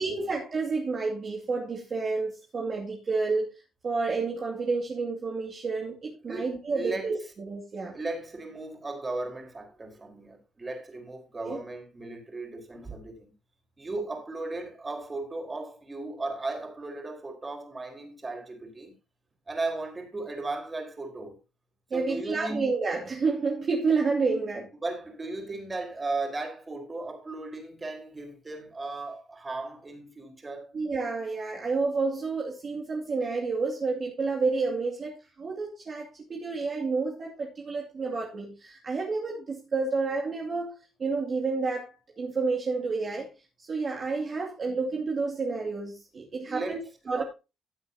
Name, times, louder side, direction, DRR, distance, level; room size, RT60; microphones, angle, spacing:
voice 1, 0.0-3.5 3.8-8.0 11.4-11.6 21.9-24.7 30.7-43.3 43.6-46.8 47.1-47.2, right 4 dB, 45° right, 2.5 m, -30 dB
voice 2, 6.3-7.1 7.9-13.3 13.8-18.9 19.5-21.4 21.9-22.7 24.8-30.7 46.4-46.8 47.1-47.2, right 2 dB, 25° right, 4.5 m, -36 dB
16.0 x 8.3 x 2.8 m
cardioid pair, 90°, 0 cm